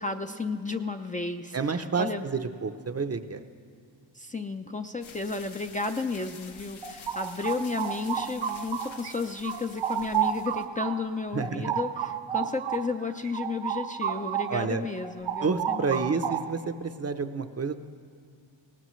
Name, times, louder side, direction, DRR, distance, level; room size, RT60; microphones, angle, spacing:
voice 1, 0.0-2.3 4.1-16.1, left 4 dB, 15° left, 5 dB, 0.5 m, -33 dB
voice 2, 1.5-3.4 11.3-11.6 14.5-14.9 15.4-17.8, right 4 dB, 35° right, 9 dB, 0.7 m, -29 dB
sound 1, 5.0-10.7, left 6 dB, 90° left, 1.0 m, -49 dB
sound 2, 6.6-9.1 9.4-14.7 15.0-16.7, right 9 dB, 70° right, 0.7 m, -32 dB
19.0 x 18.0 x 3.1 m, 2.1 s
cardioid pair, 85°, 46 cm